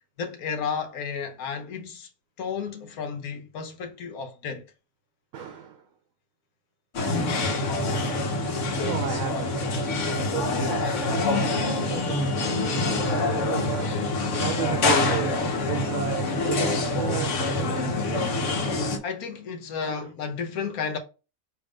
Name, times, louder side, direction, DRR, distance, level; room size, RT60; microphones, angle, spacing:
voice 1, 0.2-2.1 2.4-4.6 19.0-21.0, left 6 dB, 85° left, 1.3 m, -32 dB
voice 2, 5.3-5.9 8.1-8.3 8.7-18.0 19.8-20.1, right 9 dB, 70° right, 1.1 m, -35 dB
sound 1, 6.9-19.0, left 2 dB, 60° left, 1.1 m, -26 dB
3.6 x 3.0 x 4.9 m
omnidirectional pair, 1.5 m